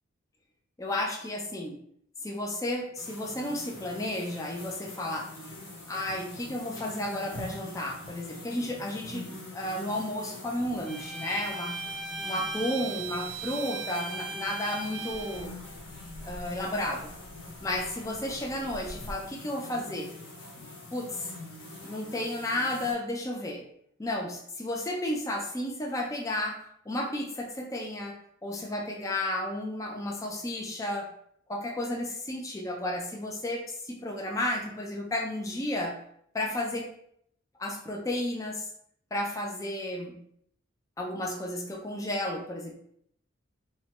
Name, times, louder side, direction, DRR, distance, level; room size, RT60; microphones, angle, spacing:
voice 1, 0.8-1.8 2.2-5.3 5.9-11.8 12.2-15.5 16.2-17.1 17.6-20.1 20.9-21.3 21.8-23.7 24.0-31.1 31.5-36.0 36.3-36.9 37.6-38.7 39.1-40.2 41.0-42.8, left 1 dB, 15° left, 1 dB, 0.3 m, -33 dB
sound 1, 3.0-22.9, left 1 dB, 85° left, 1.1 m, -44 dB
Bowed string instrument, 10.9-15.5, right 3 dB, 70° right, 0.4 m, -38 dB
3.0 x 2.2 x 2.8 m, 0.69 s
head